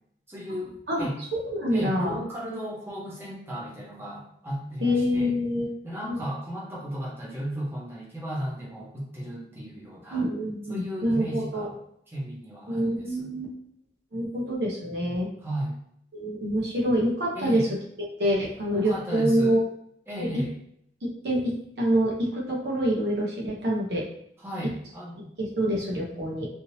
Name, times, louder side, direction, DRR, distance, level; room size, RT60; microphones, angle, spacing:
voice 1, 0.3-1.2 1.7-5.4 5.8-10.2 10.7-11.8 12.1-13.3 15.4-15.8 17.3-17.7 18.7-19.6 20.1-20.5 24.4-25.3, equal, 15° right, -6 dB, 1.0 m, -35 dB
voice 2, 0.9-2.2 4.8-5.7 6.0-6.2 10.1-11.7 12.7-13.5 14.1-15.3 16.1-17.6 18.2-19.6 20.2-20.3 21.2-24.0 25.4-26.5, equal, 65° right, -3 dB, 0.9 m, -26 dB
3.6 x 2.7 x 2.7 m, 0.71 s
head